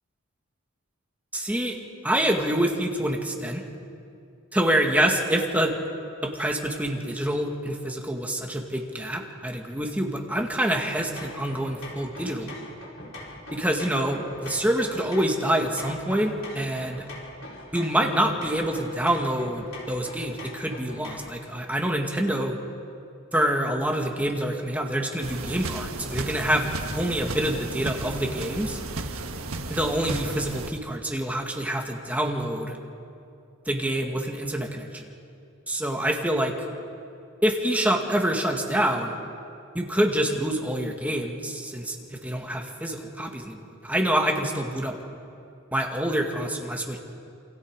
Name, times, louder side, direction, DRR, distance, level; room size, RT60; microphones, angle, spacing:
voice 1, 1.3-1.8 2.0-3.6 4.5-5.8 6.2-12.6 13.5-17.1 17.7-22.6 23.3-28.8 29.7-32.8 33.7-35.1 35.7-36.5 37.4-39.1 39.7-45.0 45.7-47.0, right 1 dB, 5° right, 1 dB, 2.1 m, -26 dB
sound 1, 10.8-21.4, left 1 dB, 60° left, 5.3 m, -42 dB
sound 2, 25.2-30.7, right 3 dB, 75° right, 1.5 m, -34 dB
28.0 x 28.0 x 4.9 m, 2.6 s
head